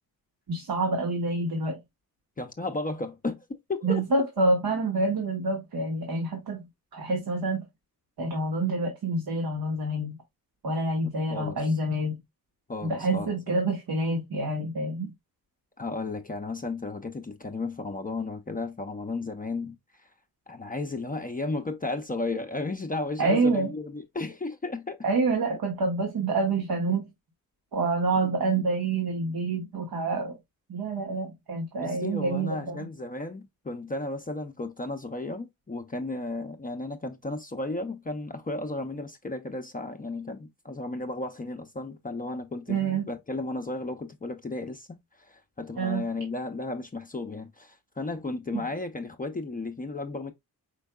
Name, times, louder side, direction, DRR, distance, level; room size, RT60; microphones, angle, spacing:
voice 1, 0.5-1.8 3.8-6.6 6.9-7.6 8.2-10.2 10.6-12.2 12.8-15.1 23.2-23.7 25.0-27.0 27.7-30.4 30.7-32.8 42.7-43.1 45.8-46.0 48.5-48.6, right 2 dB, 85° right, 1.3 m, -27 dB
voice 2, 2.4-4.2 11.3-11.8 12.7-13.5 15.8-19.8 20.5-25.0 28.2-28.4 31.8-50.3, left 2 dB, 25° left, 0.5 m, -34 dB
4.5 x 4.5 x 2.2 m
wide cardioid pair, 120°, 35 cm